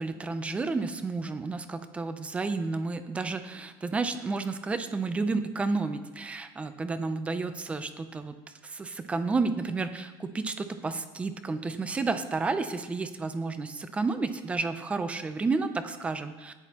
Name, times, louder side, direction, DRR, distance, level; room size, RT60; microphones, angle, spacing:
voice 1, 0.0-8.3 8.6-16.5, right 3 dB, 10° right, 10 dB, 0.5 m, -31 dB
15.0 x 10.0 x 2.9 m, 1.2 s
cardioid pair, 175°, 11 cm